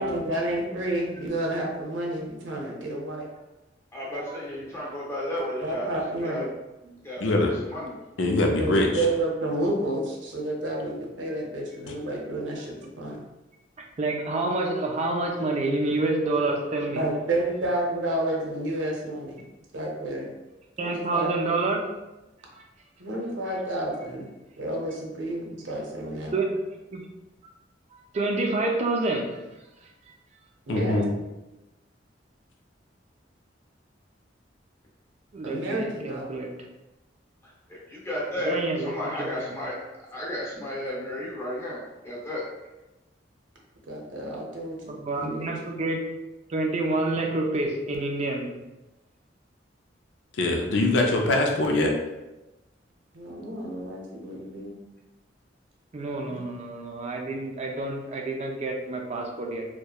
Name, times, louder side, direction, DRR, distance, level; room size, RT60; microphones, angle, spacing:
voice 1, 0.0-3.3 4.1-4.2 4.5-4.6 5.6-6.5 8.4-13.2 16.9-19.5 19.7-20.3 20.8-21.3 23.0-24.3 24.6-26.3 30.7-31.0 35.4-36.4 43.9-45.5 53.1-54.7 56.2-56.4, right 1 dB, 90° right, -1 dB, 0.6 m, -30 dB
voice 2, 3.9-6.5 7.0-7.9 37.4-39.7 40.1-42.4, left 1 dB, 15° left, -5 dB, 0.7 m, -33 dB
voice 3, 7.2-7.5 8.2-8.9 30.7-31.1 50.4-52.0, left 2 dB, 85° left, 1 dB, 0.5 m, -22 dB
voice 4, 14.0-17.0 20.8-21.9 22.5-22.6 26.3-26.5 26.9-27.0 28.1-29.3 35.3-36.5 38.4-38.9 39.2-39.3 44.9-46.1 46.5-48.5 55.9-59.7, right 2 dB, 35° right, 1 dB, 0.4 m, -28 dB
2.8 x 2.2 x 2.3 m, 1.0 s
head